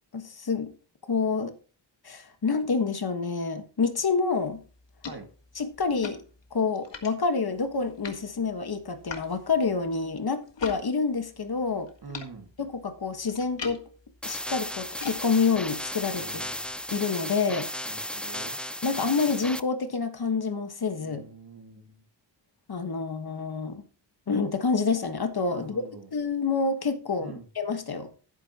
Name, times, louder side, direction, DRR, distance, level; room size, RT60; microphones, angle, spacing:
voice 1, 0.1-0.7 1.1-1.5 2.0-4.6 5.5-6.2 6.5-11.9 12.6-13.8 14.2-16.4 16.9-17.7 18.8-21.2 22.7-23.8 24.3-25.8 26.1-28.1, left 4 dB, 55° left, 1.5 m, -28 dB
sound 1, 4.4-10.8 11.1-17.0, left 6 dB, 70° left, 1.7 m, -44 dB
voice 2, 12.0-12.5 16.2-16.6 17.9-18.6 21.0-22.0 25.5-26.1 27.2-27.4, right 4 dB, 55° right, 2.1 m, -44 dB
sound 2, 14.2-19.6, left 1 dB, 5° left, 0.4 m, -35 dB
11.5 x 10.0 x 2.9 m
wide cardioid pair, 125°, 44 cm